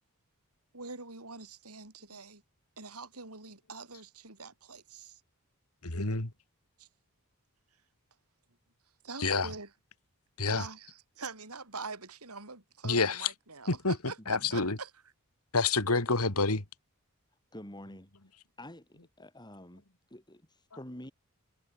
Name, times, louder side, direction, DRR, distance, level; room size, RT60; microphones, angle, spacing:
voice 1, 0.7-2.4 2.8-5.2 6.8-6.9 9.0-9.7 10.6-14.9, right 4 dB, 90° right, 7.3 m, -44 dB
voice 2, 5.8-6.3 9.2-9.5 10.4-10.7 12.8-13.3 13.7-14.0 14.3-14.8 15.5-16.6, left 3 dB, 80° left, 2.8 m, -28 dB
voice 3, 17.5-18.1 18.6-19.8 20.1-21.1, left 1 dB, 20° left, 6.8 m, -47 dB
head